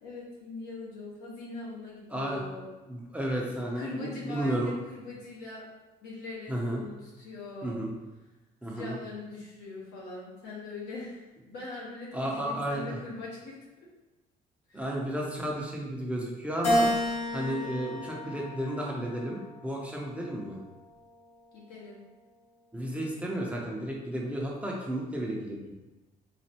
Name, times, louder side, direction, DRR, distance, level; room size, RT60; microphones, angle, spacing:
voice 1, 0.0-2.7 3.7-5.6 6.0-7.8 8.7-13.5 14.7-14.8 15.4-15.5 21.5-22.0, left 3 dB, 75° left, -5 dB, 1.4 m, -41 dB
voice 2, 2.1-2.4 2.9-4.7 6.5-6.8 7.6-7.9 8.6-8.9 12.1-12.9 14.7-16.9 17.3-20.6 22.7-25.7, right 1 dB, 10° right, -3 dB, 0.7 m, -33 dB
Keyboard (musical), 16.6-19.1 19.7-20.9, equal, 40° left, 0.9 m, -31 dB
4.0 x 2.6 x 2.9 m, 1.1 s
cardioid pair, 110°, 17 cm